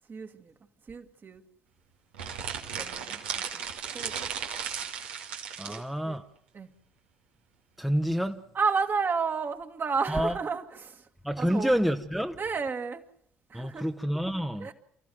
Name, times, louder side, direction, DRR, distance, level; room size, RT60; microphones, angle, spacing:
voice 1, 0.1-0.5 0.9-1.4 2.8-3.2 3.5-3.6 3.9-4.3 5.7-6.2 6.5-6.7 8.5-11.1 11.4-11.7 12.4-13.0 13.5-13.9 14.6-14.7, right 5 dB, 35° right, 2.0 m, -32 dB
sound 1, 2.1-5.8, right 7 dB, 75° right, 1.8 m, -35 dB
voice 2, 5.6-6.2 7.8-8.4 10.1-10.3 11.2-12.4 13.5-14.7, equal, ahead, 1.2 m, -28 dB
29.0 x 14.5 x 7.8 m
figure-of-eight pair, 50°, 6 cm